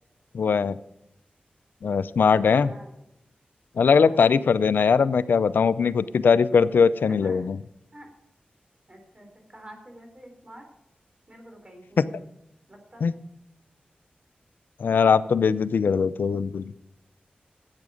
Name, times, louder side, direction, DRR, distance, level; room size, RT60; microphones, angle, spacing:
voice 1, 0.3-0.8 1.8-2.7 3.8-7.6 13.0-13.1 14.8-16.7, left 6 dB, 85° left, 15 dB, 0.5 m, -20 dB
voice 2, 3.9-4.8 6.2-6.3 7.1-7.6 7.9-8.1 8.9-10.6 11.3-12.3 12.7-13.1, right 1 dB, 30° right, 3 dB, 4.0 m, -48 dB
12.0 x 8.5 x 6.4 m, 0.83 s
cardioid pair, 60°, 3 cm